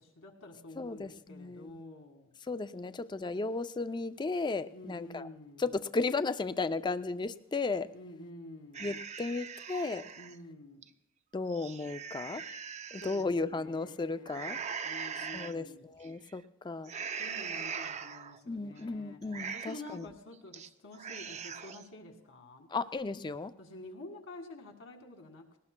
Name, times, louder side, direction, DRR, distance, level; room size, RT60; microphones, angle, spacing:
voice 1, 0.0-2.3 4.7-5.7 7.9-8.9 10.2-10.9 13.0-15.8 17.2-19.2 19.5-22.7 23.6-25.5, left 2 dB, 65° left, 3 dB, 1.9 m, -49 dB
voice 2, 0.8-1.7 2.5-5.3 5.6-7.9 8.8-10.0 11.3-12.4 12.9-14.6 15.3-15.7 16.0-16.9 18.5-20.0 22.7-23.5, left 3 dB, 20° left, 12 dB, 0.4 m, -34 dB
sound 1, 8.7-10.4 10.8-10.9 11.4-13.2 14.3-15.5 16.0-16.4 16.9-18.4 18.8-18.9 19.2-19.9 20.3-20.7 20.9-21.9, right 6 dB, 35° right, 0.5 m, -41 dB
20.0 x 18.0 x 2.2 m, 0.81 s
head